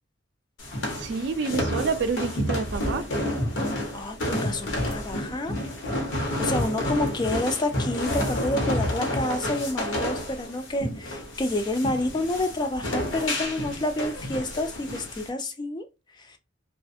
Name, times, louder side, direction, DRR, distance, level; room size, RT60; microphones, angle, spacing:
sound 1, 0.6-15.3, left 1 dB, 85° left, 0.9 m, -30 dB
voice 1, 0.9-3.1, right 4 dB, 60° right, 0.4 m, -28 dB
voice 2, 3.9-5.5 6.1-15.9 16.2-16.4, left 1 dB, 25° left, 0.3 m, -29 dB
2.4 x 2.4 x 2.5 m
head